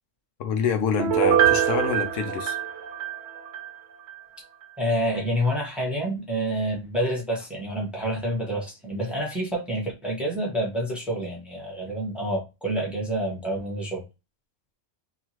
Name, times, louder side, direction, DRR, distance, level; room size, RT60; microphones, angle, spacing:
voice 1, 0.4-2.6, left 7 dB, 80° left, 0.9 m, -27 dB
Piano, 1.0-3.7 4.1-4.2, right 9 dB, 70° right, 0.8 m, -23 dB
voice 2, 4.8-14.0, equal, ahead, 0.9 m, -28 dB
2.8 x 2.4 x 2.9 m
omnidirectional pair, 1.3 m